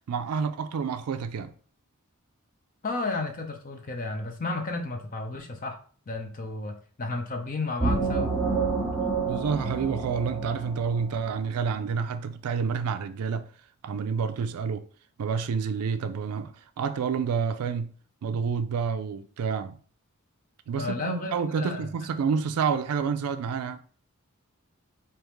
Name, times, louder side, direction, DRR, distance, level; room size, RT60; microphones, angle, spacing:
voice 1, 0.1-1.5 9.3-13.5 13.8-14.9 15.2-17.9 18.2-19.7 20.7-23.8, right 6 dB, 90° right, 0.4 m, -29 dB
voice 2, 2.8-5.8 6.1-8.3 20.8-21.9, left 3 dB, 40° left, 0.6 m, -33 dB
sound 1, 7.8-11.4, right 4 dB, ahead, 1.6 m, -28 dB
3.5 x 2.8 x 3.1 m
head